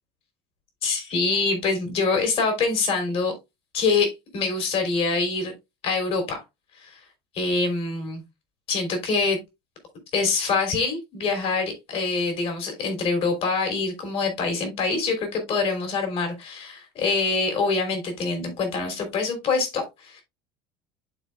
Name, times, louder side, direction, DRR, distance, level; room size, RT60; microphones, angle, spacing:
voice 1, 0.8-3.3 3.7-5.5 5.8-6.4 6.8-7.0 7.3-8.2 8.7-9.4 10.1-20.2, left 4 dB, 50° left, 5 dB, 3.2 m, -25 dB
11.5 x 3.9 x 2.2 m, 0.22 s
supercardioid pair, 100°, 13 cm